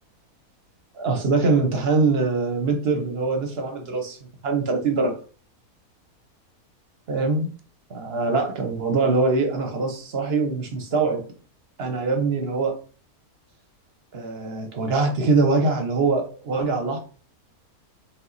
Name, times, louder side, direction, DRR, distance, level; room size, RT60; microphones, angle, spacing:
voice 1, 0.9-4.2 4.4-5.1 7.1-7.5 7.9-11.2 11.8-12.8 14.1-17.0, right 3 dB, 50° right, 0.9 m, -23 dB
5.3 x 2.4 x 3.9 m
omnidirectional pair, 1.6 m